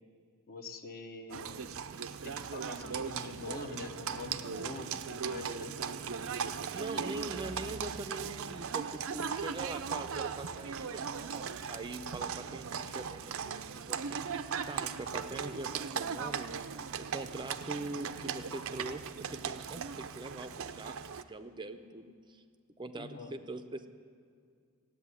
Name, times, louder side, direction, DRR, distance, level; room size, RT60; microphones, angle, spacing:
voice 1, 0.5-1.8 2.2-5.8 23.0-23.4, left 3 dB, 45° left, 6 dB, 1.0 m, -45 dB
Livestock farm animals working animals, 1.3-21.2, right 6 dB, 65° right, 0.6 m, -38 dB
voice 2, 6.7-16.5 17.0-20.9 21.3-22.4 22.8-23.9, right 2 dB, 20° right, 9 dB, 0.6 m, -43 dB
16.0 x 8.3 x 9.7 m, 2.2 s
head